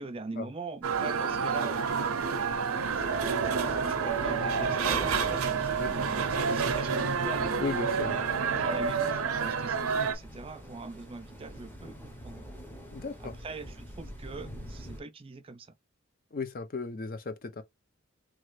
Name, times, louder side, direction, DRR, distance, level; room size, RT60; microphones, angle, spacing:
voice 1, 0.0-1.9 2.6-7.6 8.3-12.4 13.2-15.7, right 3 dB, 25° right, 0.4 m, -42 dB
sound 1, 0.8-15.0, equal, 10° left, 0.8 m, -43 dB
sound 2, 0.8-10.2, right 5 dB, 85° right, 0.6 m, -29 dB
voice 2, 7.6-8.2 12.9-13.3 16.3-17.6, left 4 dB, 40° left, 0.5 m, -36 dB
3.0 x 2.3 x 3.1 m
head